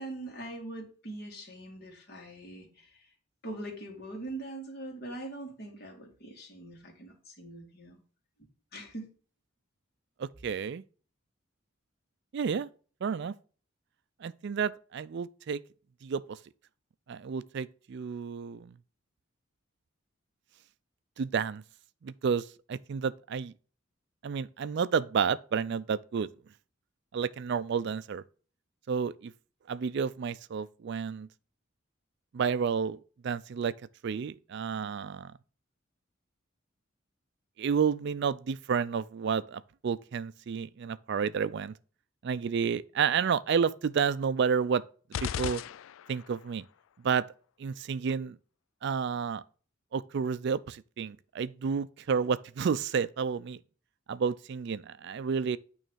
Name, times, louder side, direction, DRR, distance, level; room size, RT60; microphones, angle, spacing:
voice 1, 0.0-3.1 3.4-8.0 8.7-9.1, right 2 dB, 50° left, 2.3 m, -42 dB
voice 2, 10.2-10.8 12.3-12.7 13.0-13.3 14.2-15.6 16.0-16.4 17.1-18.7 21.2-21.6 22.0-23.5 24.2-26.3 27.1-28.2 28.9-29.3 29.7-31.3 32.3-33.0 33.2-33.7 34.0-35.3 37.6-41.7 42.2-44.8 45.2-45.6 46.1-46.6 47.0-47.3 47.6-48.4 48.8-49.4 49.9-53.6 54.1-55.6, right 6 dB, 55° right, 0.4 m, -30 dB
sound 1, 45.1-46.4, left 9 dB, 70° left, 0.3 m, -36 dB
9.0 x 3.2 x 6.2 m
head